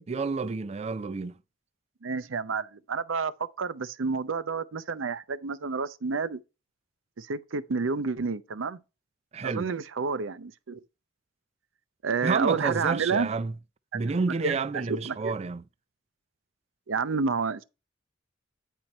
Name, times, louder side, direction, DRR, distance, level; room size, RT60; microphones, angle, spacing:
voice 1, 0.1-1.4 9.3-9.7 12.2-13.5 13.9-15.6, right 4 dB, 35° right, 0.4 m, -29 dB
voice 2, 2.0-3.3 3.6-6.4 7.2-8.8 9.4-10.8 12.0-13.3 13.9-14.0 14.4-15.3 16.9-17.6, right 5 dB, 85° right, 0.6 m, -30 dB
9.1 x 4.5 x 4.3 m
head